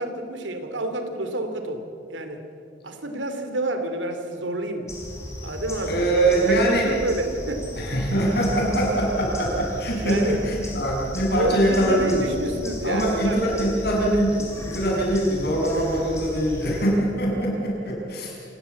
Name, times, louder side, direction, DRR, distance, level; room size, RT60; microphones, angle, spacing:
voice 1, 0.0-1.8 2.1-2.4 2.8-4.9 5.4-7.9 10.0-10.4 11.3-13.4 17.8-18.0, right 1 dB, 85° right, 7 dB, 2.8 m, -29 dB
sound 1, 4.9-16.9, left 1 dB, 15° left, 4.9 m, -36 dB
voice 2, 5.9-6.9 7.8-12.2 12.8-18.3, right 1 dB, 60° left, -2 dB, 7.2 m, -23 dB
28.0 x 16.0 x 8.3 m, 2.6 s
head